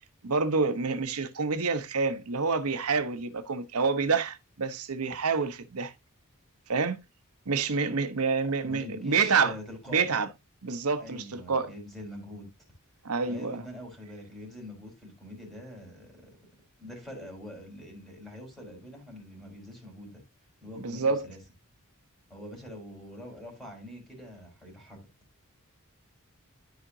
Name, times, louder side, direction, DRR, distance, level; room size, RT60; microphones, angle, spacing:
voice 1, 0.2-5.9 6.7-7.0 7.5-9.5 9.9-10.3 10.6-11.7 13.0-13.6 20.8-21.3, right 4 dB, 85° right, 1.0 m, -28 dB
voice 2, 8.6-10.1 11.0-12.5 13.3-16.4 16.8-20.2 20.6-21.4 22.3-25.1, left 1 dB, ahead, 4.1 m, -44 dB
13.0 x 5.1 x 2.7 m
head